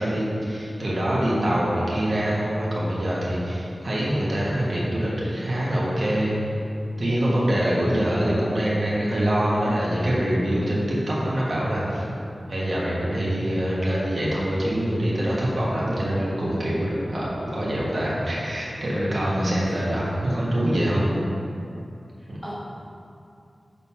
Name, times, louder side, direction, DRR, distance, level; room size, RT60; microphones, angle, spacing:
voice 1, 0.0-6.3 7.0-12.1 12.5-21.1 22.3-22.4, right 1 dB, 55° right, -7 dB, 1.4 m, -24 dB
voice 2, 1.2-1.7 7.8-8.1 19.3-19.9 22.4-22.5, equal, ahead, -7 dB, 0.9 m, -30 dB
5.7 x 4.0 x 5.7 m, 2.6 s
wide cardioid pair, 65°, 0 cm